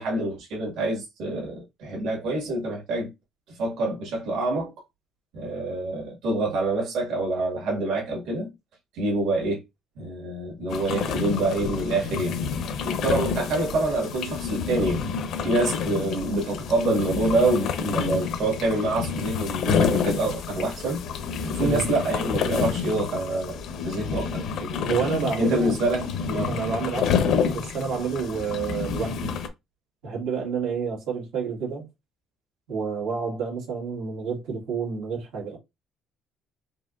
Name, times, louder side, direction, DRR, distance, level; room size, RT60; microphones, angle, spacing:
voice 1, 0.0-3.1 3.6-4.7 5.3-8.5 8.9-9.6 10.0-12.4 12.8-15.0 15.4-21.0 21.5-24.8 25.4-26.5, right 2 dB, 70° right, 1.8 m, -26 dB
sound 1, 10.7-29.5, left 6 dB, 55° left, 0.7 m, -29 dB
voice 2, 21.6-21.9 24.8-25.8 26.5-29.3 30.0-31.9 32.7-35.6, right 5 dB, 85° right, 1.9 m, -29 dB
4.7 x 2.9 x 2.5 m
cardioid pair, 160°, 0 cm